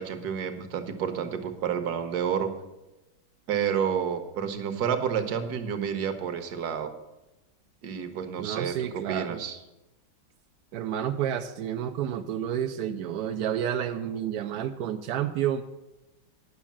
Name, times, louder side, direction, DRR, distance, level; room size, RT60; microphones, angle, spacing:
voice 1, 0.0-2.5 3.5-6.9 7.8-9.6, right 7 dB, 60° right, 7 dB, 1.2 m, -30 dB
voice 2, 8.4-9.4 10.7-15.6, right 10 dB, 75° right, 5 dB, 0.9 m, -30 dB
9.4 x 6.2 x 7.3 m, 1.0 s
omnidirectional pair, 2.3 m